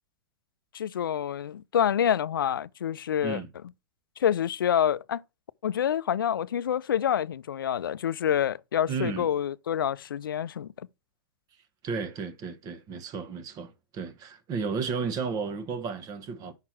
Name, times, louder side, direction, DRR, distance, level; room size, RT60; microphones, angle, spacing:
voice 1, 0.7-3.4 4.2-5.2 5.6-10.9, left 9 dB, 80° left, 0.4 m, -27 dB
voice 2, 8.9-9.3 11.8-16.5, right 5 dB, 35° right, 1.2 m, -33 dB
5.8 x 4.5 x 5.8 m
hypercardioid pair, 110°, 11 cm